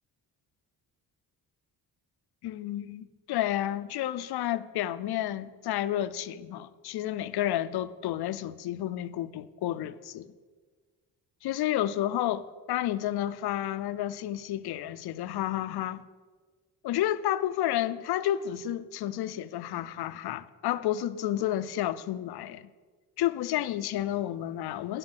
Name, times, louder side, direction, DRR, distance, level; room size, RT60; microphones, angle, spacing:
voice 1, 2.4-10.3 11.4-16.0 16.8-22.7 23.2-25.0, left 12 dB, 70° left, 0.6 m, -31 dB
9.7 x 5.2 x 7.8 m
cardioid pair, 95°, 40 cm